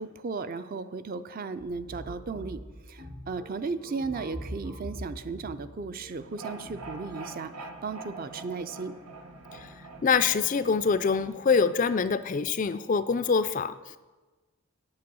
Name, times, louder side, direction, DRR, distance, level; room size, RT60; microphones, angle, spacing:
voice 1, 0.0-8.9, right 4 dB, 40° right, 12 dB, 0.4 m, -35 dB
sound 1, 1.6-7.0, equal, 60° right, 3.6 m, -43 dB
sound 2, 6.1-12.2, right 3 dB, 85° right, 1.3 m, -45 dB
voice 2, 10.0-14.0, left 5 dB, 35° left, 13 dB, 0.3 m, -25 dB
8.6 x 8.6 x 6.2 m, 1.2 s
head